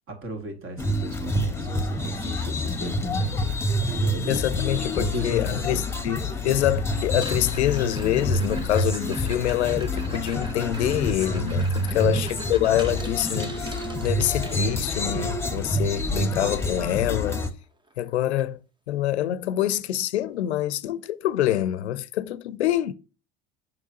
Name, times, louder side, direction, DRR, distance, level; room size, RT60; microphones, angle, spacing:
voice 1, 0.1-3.5 3.9-4.5 5.0-5.9 11.8-12.5, right 1 dB, 40° right, 2.1 m, -36 dB
sound 1, 0.8-17.5, left 1 dB, 10° left, 1.2 m, -27 dB
voice 2, 4.3-17.4 18.0-18.6 18.9-22.9, left 12 dB, 80° left, 0.7 m, -26 dB
sound 2, 7.1-15.0 17.3-17.4 17.6-18.0 18.4-18.5 19.1-19.2 21.0-21.1, right 2 dB, 15° right, 0.9 m, -43 dB
6.8 x 6.0 x 2.9 m
hypercardioid pair, 75°, 33 cm